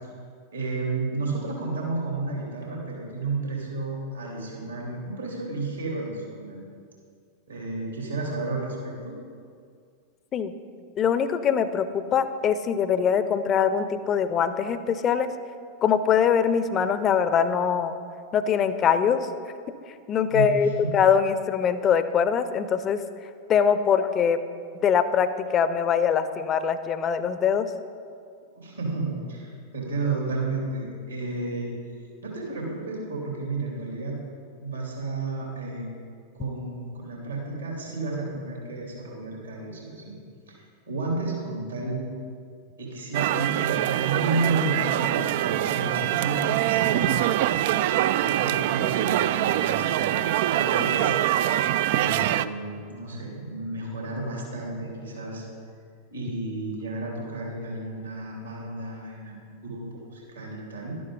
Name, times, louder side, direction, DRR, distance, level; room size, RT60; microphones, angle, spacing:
voice 1, 0.5-6.6 7.5-9.2 20.3-20.9 28.5-31.7 32.2-34.2 34.6-35.9 36.3-40.1 40.5-42.0 42.8-47.3 48.1-51.1 51.9-55.4 56.1-60.9, right 3 dB, 75° right, -2 dB, 2.9 m, -32 dB
voice 2, 11.0-15.3 15.8-17.9 18.3-19.3 20.1-23.0 23.5-24.4 24.8-27.7, left 7 dB, 30° left, 12 dB, 0.6 m, -23 dB
sound 1, 43.1-52.5, right 12 dB, 50° right, 0.3 m, -24 dB
12.0 x 11.0 x 3.9 m, 2.3 s
figure-of-eight pair, 90°, 0 cm